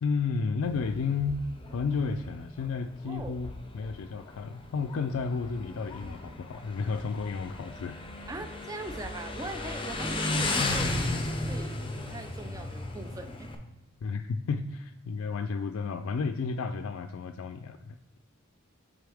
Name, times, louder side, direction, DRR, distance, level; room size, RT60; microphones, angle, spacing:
voice 1, 0.0-1.5 1.7-8.0 14.0-18.2, left 5 dB, 65° left, 7 dB, 0.4 m, -32 dB
Motorcycle, 0.6-13.6, left 2 dB, 25° left, 0.6 m, -35 dB
voice 2, 3.1-3.4 8.3-11.1 11.4-13.5, right 2 dB, 15° right, 6 dB, 0.5 m, -41 dB
7.8 x 4.1 x 3.5 m, 1.1 s
head